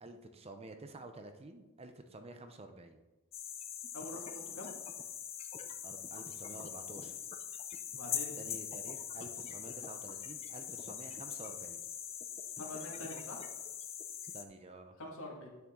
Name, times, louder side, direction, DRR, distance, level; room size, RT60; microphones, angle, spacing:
voice 1, 0.0-3.0 5.8-7.2 8.4-11.8 14.3-15.0, right 2 dB, 30° right, 7 dB, 0.6 m, -50 dB
sound 1, 3.3-14.4, left 8 dB, 30° left, 0.5 m, -42 dB
voice 2, 3.9-4.7 7.9-8.4 12.6-13.4 15.0-15.5, left 1 dB, 75° left, -1 dB, 2.0 m, -45 dB
8.8 x 7.0 x 3.7 m, 1.1 s
head